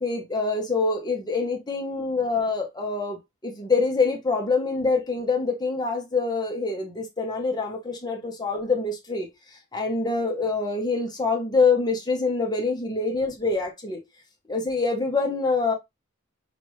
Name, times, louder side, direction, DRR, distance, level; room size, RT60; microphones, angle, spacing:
voice 1, 0.0-9.3 9.7-14.0 14.5-15.7, left 4 dB, 20° left, 0.9 m, -25 dB
5.9 x 2.5 x 3.1 m
head